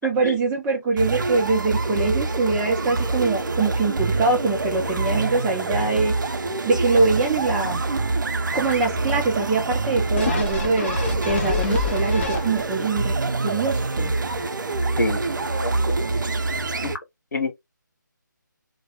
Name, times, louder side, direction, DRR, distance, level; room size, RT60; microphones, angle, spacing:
voice 1, 0.0-6.1 6.6-7.8 8.5-11.0 11.2-13.1 13.4-14.1, right 3 dB, 10° right, 0.4 m, -23 dB
sound 1, 1.0-17.0, right 3 dB, 70° right, 0.4 m, -25 dB
sound 2, 10.2-12.9 13.3-13.4, left 5 dB, 35° left, 0.7 m, -28 dB
voice 2, 15.0-15.9 16.8-16.9 17.3-17.5, left 2 dB, 60° left, 0.9 m, -27 dB
2.2 x 2.1 x 2.9 m
figure-of-eight pair, 155°, 11 cm